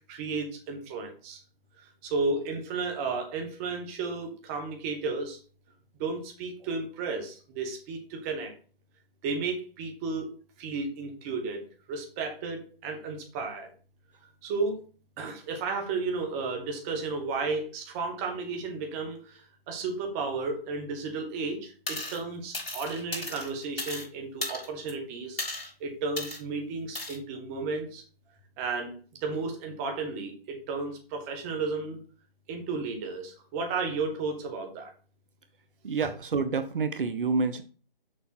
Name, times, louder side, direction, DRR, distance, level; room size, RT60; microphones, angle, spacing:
voice 1, 0.1-1.4 2.0-5.4 6.0-8.5 9.2-10.3 10.6-13.7 14.4-14.8 15.2-25.4 25.8-28.0 28.6-28.9 29.2-32.0 32.5-34.9, right 4 dB, 15° right, 3 dB, 1.1 m, -33 dB
sound 1, 21.9-22.2 22.5-24.1 24.4-24.9 25.4-25.7 26.2-26.4 26.9-27.2, left 2 dB, 80° left, 3.3 m, -35 dB
voice 2, 35.8-37.6, right 4 dB, 60° right, 11 dB, 0.8 m, -28 dB
6.4 x 5.3 x 4.3 m, 0.39 s
figure-of-eight pair, 150°, 29 cm